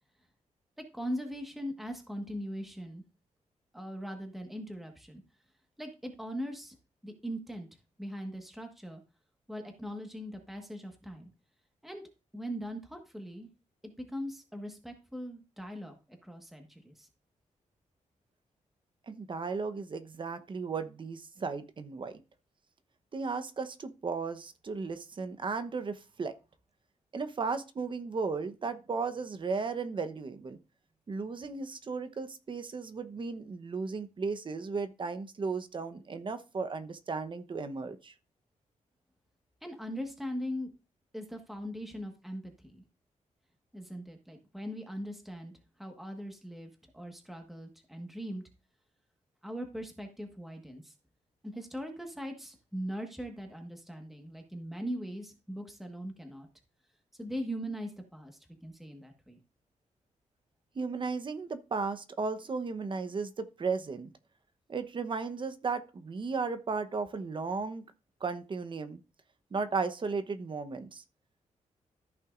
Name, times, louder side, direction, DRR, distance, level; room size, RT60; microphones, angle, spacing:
voice 1, 0.9-3.0 3.7-5.2 5.8-6.7 7.0-7.7 8.0-9.0 9.5-11.3 11.8-12.0 12.3-13.5 14.0-17.1 39.6-40.7 41.1-42.8 43.7-45.5 45.8-48.4 49.4-50.9 51.4-56.5 57.2-59.4, equal, ahead, 4 dB, 1.5 m, -40 dB
voice 2, 19.1-22.2 23.1-26.3 27.1-30.6 31.1-38.1 60.7-64.1 64.7-67.8 68.2-69.0 69.5-71.0, right 4 dB, 40° right, 10 dB, 0.9 m, -35 dB
14.0 x 5.8 x 2.5 m, 0.30 s
wide cardioid pair, 125°, 13 cm